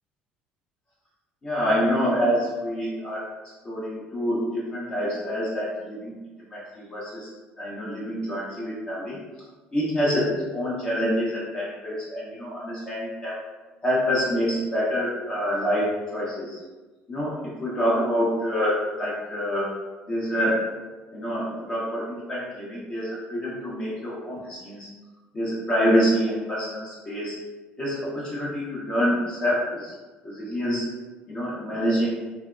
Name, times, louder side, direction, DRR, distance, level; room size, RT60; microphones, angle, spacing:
voice 1, 1.4-3.2 3.6-6.1 6.5-7.3 7.6-9.2 9.7-13.4 13.8-16.6 17.1-19.7 20.1-20.7 21.1-24.9 25.3-27.4 27.8-29.9 30.2-30.9 31.3-32.2, equal, 30° left, -8 dB, 0.7 m, -26 dB
2.6 x 2.2 x 2.3 m, 1.2 s
cardioid pair, 110°, 4 cm